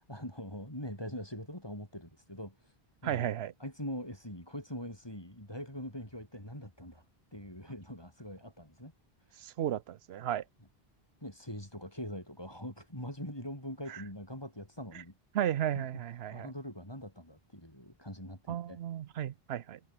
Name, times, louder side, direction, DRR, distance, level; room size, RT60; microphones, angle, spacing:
voice 1, 0.0-2.8 3.0-3.3 3.6-7.0 7.3-8.9 9.2-9.5 11.2-15.2 15.7-15.9 16.3-18.8, equal, 25° left, 7.1 m, -43 dB
voice 2, 3.0-3.5 9.4-10.4 13.9-14.0 15.3-16.5 18.5-19.8, right 11 dB, 85° right, 0.9 m, -34 dB
omnidirectional pair, 1.0 m